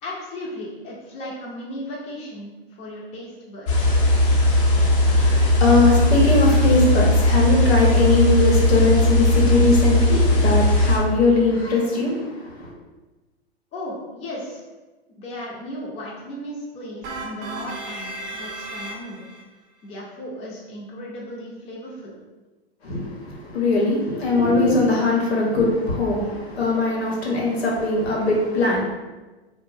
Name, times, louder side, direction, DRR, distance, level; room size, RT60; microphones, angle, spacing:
voice 1, 0.0-4.0 13.7-14.6 15.2-19.3 19.8-22.2, left 1 dB, 20° left, -4 dB, 0.5 m, -36 dB
sound 1, 3.7-11.0, left 1 dB, 60° left, 0.7 m, -18 dB
voice 2, 5.0-12.7 22.8-28.8, left 2 dB, 90° left, -2 dB, 0.9 m, -20 dB
sound 2, 17.0-19.4, right 2 dB, 25° right, 0.5 m, -34 dB
2.5 x 2.1 x 3.2 m, 1.2 s
hypercardioid pair, 110°, 30 cm